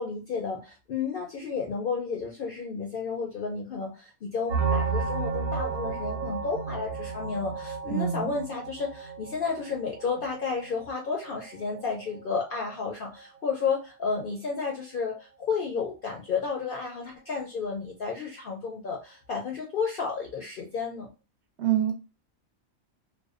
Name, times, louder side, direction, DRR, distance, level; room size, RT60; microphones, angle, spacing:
voice 1, 0.0-21.1, left 5 dB, 65° left, 0 dB, 0.5 m, -32 dB
sound 1, 4.5-13.8 14.1-14.3 14.6-14.7 15.0-15.2, right 5 dB, 85° right, 1.0 m, -34 dB
voice 2, 7.9-8.3 21.6-21.9, right 10 dB, 65° right, 2 dB, 0.8 m, -25 dB
2.6 x 2.1 x 2.3 m, 0.30 s
omnidirectional pair, 1.4 m